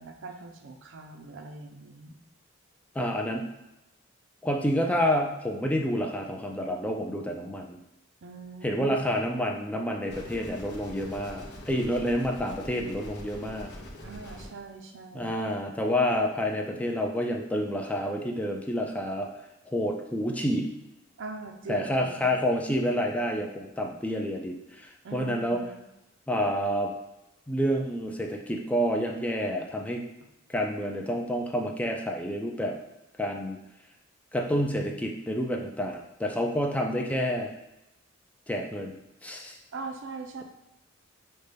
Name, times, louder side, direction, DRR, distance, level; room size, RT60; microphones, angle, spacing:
voice 1, 0.0-2.2 8.2-8.9 14.0-15.4 21.2-22.3 25.0-25.8 39.7-40.4, right 4 dB, 70° right, 5 dB, 0.5 m, -41 dB
voice 2, 3.0-3.4 4.4-7.8 8.6-13.7 15.1-19.3 19.7-20.7 21.7-25.6 26.3-26.9 27.5-30.0 30.5-32.8 33.2-33.6 34.3-37.5 38.5-39.0 39.2-39.6, equal, 5° left, 2 dB, 0.3 m, -29 dB
sound 1, 10.1-14.5, left 1 dB, 60° left, 0.7 m, -43 dB
5.3 x 2.2 x 3.3 m, 0.92 s
head